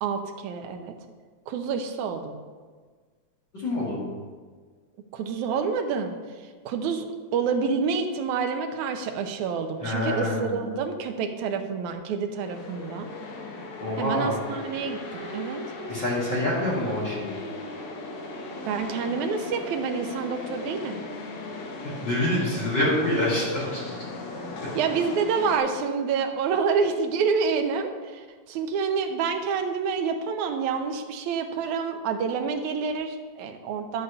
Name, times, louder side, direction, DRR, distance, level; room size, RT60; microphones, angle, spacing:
voice 1, 0.0-0.9 1.5-2.4 5.1-6.1 6.7-13.1 14.0-15.6 18.7-21.0 24.8-34.0, right 5 dB, 80° right, 5 dB, 2.2 m, -28 dB
voice 2, 3.5-4.1 9.8-10.6 13.8-14.4 15.9-17.3 22.0-23.9, left 1 dB, 40° left, -9 dB, 2.7 m, -26 dB
sound 1, 12.4-25.6, left 2 dB, 75° left, 2.3 m, -37 dB
11.5 x 4.0 x 6.8 m, 1.5 s
omnidirectional pair, 3.4 m